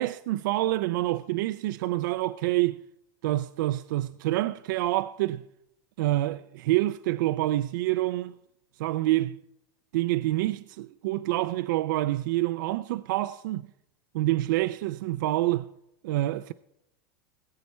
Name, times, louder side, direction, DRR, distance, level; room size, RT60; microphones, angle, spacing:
voice 1, 0.0-2.8 3.2-5.4 6.0-8.3 8.8-9.4 9.9-13.7 14.1-15.7 16.0-16.5, right 16 dB, 75° right, 0.4 m, -27 dB
18.5 x 8.2 x 4.3 m
supercardioid pair, 115°, 10 cm